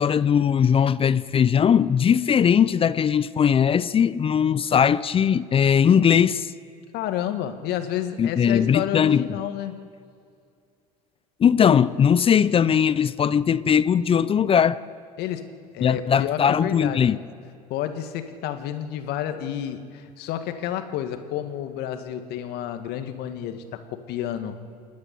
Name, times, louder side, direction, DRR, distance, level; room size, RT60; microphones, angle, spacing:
voice 1, 0.0-6.5 8.2-9.2 11.4-14.8 15.8-17.2, left 8 dB, 30° left, 0.6 m, -19 dB
voice 2, 6.9-9.8 15.2-15.5 15.7-17.2 17.7-24.6, left 10 dB, 55° left, 1.8 m, -30 dB
28.5 x 9.6 x 9.4 m
hypercardioid pair, 75°, 20 cm